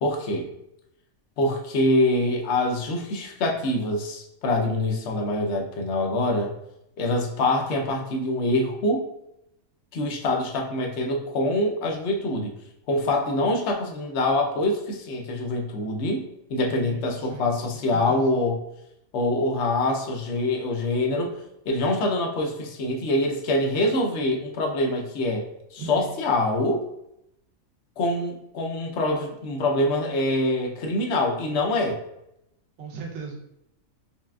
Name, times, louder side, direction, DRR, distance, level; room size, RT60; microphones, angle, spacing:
voice 1, 0.0-0.5 1.4-6.5 7.0-9.0 9.9-12.5 12.9-16.2 16.5-18.6 19.1-21.4 21.7-26.8 28.0-32.0, left 1 dB, 60° left, 1 dB, 0.8 m, -25 dB
voice 2, 16.7-17.4 17.7-18.2 25.8-26.1 32.8-33.4, right 5 dB, 60° right, -2 dB, 1.0 m, -38 dB
5.5 x 2.4 x 2.3 m, 0.82 s
omnidirectional pair, 1.5 m